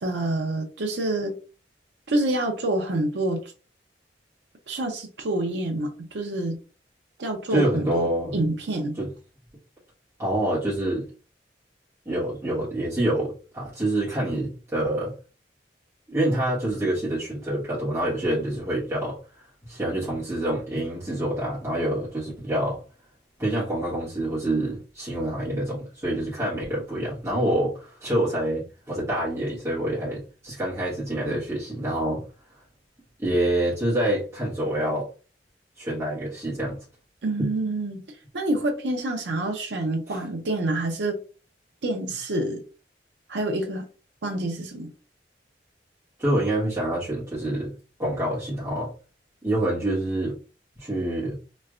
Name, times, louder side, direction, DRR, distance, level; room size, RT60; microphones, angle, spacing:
voice 1, 0.0-1.3 2.1-3.5 4.7-6.6 7.2-8.1 8.3-9.0 37.2-38.0 38.3-41.2 41.8-42.6 43.3-43.8 44.2-44.9, right 2 dB, 75° right, 0.6 m, -27 dB
voice 2, 7.5-8.4 8.9-9.1 10.2-11.1 12.0-15.1 16.1-19.2 19.6-22.8 23.4-32.2 33.2-35.1 35.8-36.8 37.4-37.5 40.1-40.2 46.2-47.7 48.0-48.9 49.4-50.3 50.8-51.4, right 1 dB, 15° right, 1.5 m, -26 dB
3.2 x 3.1 x 2.5 m
head